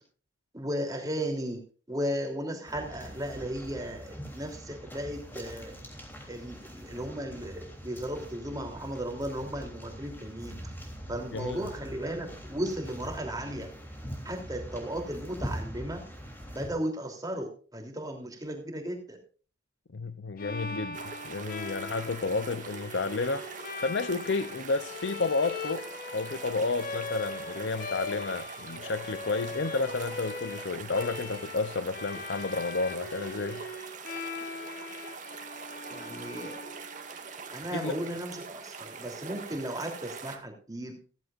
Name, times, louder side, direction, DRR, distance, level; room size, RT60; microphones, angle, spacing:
voice 1, 0.5-1.6 1.9-5.7 6.2-10.5 11.1-13.7 14.2-16.0 16.5-19.2 35.9-36.6 37.5-41.0, right 1 dB, 20° right, 3.2 m, -35 dB
sound 1, 2.7-16.7, equal, 10° left, 3.3 m, -43 dB
voice 2, 11.3-11.7 19.9-23.5 23.8-25.9 26.1-33.6 37.7-37.9, left 3 dB, 65° left, 0.7 m, -31 dB
Bowed string instrument, 20.4-37.3, left 4 dB, 50° left, 1.2 m, -40 dB
sound 2, 20.9-40.4, right 5 dB, 40° right, 1.9 m, -43 dB
15.5 x 15.0 x 2.5 m
head